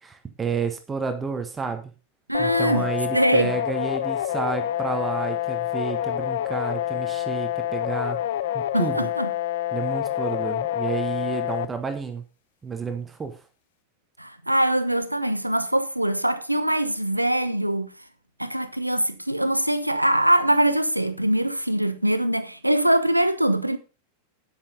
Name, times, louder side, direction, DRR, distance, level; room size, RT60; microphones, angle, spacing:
voice 1, 0.0-1.9 2.4-8.2 8.5-9.1 9.7-12.2 12.6-13.3, right 5 dB, 15° right, 1.5 m, -30 dB
sound 1, 2.3-11.7, left 12 dB, 55° left, 0.8 m, -27 dB
voice 2, 2.3-2.9 3.1-3.5 8.7-9.3 14.2-17.9 18.4-23.8, right 1 dB, 90° right, 1.0 m, -22 dB
9.5 x 9.0 x 5.2 m
figure-of-eight pair, 90°, 0 cm